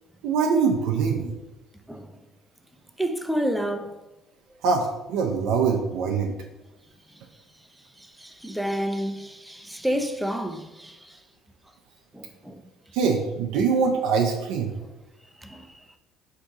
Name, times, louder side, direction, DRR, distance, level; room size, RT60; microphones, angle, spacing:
voice 1, 0.2-1.3 4.6-6.3 12.9-14.7, right 5 dB, 75° right, 0.5 m, -23 dB
voice 2, 3.0-4.0 8.2-11.2 12.1-12.6 15.4-15.7, equal, 5° right, 0.5 m, -29 dB
3.6 x 2.7 x 4.7 m
supercardioid pair, 85°, 0 cm